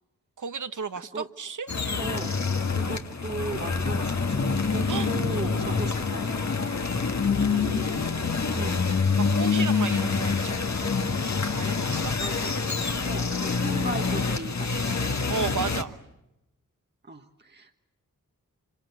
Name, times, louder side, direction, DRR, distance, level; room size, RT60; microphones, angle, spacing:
voice 1, 0.4-2.1 4.9-5.9 7.5-7.6 9.1-12.1 15.3-15.9, right 6 dB, 65° right, 12 dB, 1.2 m, -35 dB
voice 2, 0.9-1.3 2.0-2.3 2.7-6.3 6.7-7.0 7.3-8.0 8.6-8.9 12.2-15.1 17.0-17.8, right 3 dB, 30° right, 4 dB, 1.4 m, -38 dB
sound 1, 1.7-15.8, left 4 dB, 55° left, 1.8 m, -26 dB
26.5 x 26.0 x 8.2 m, 0.90 s
wide cardioid pair, 65°, 33 cm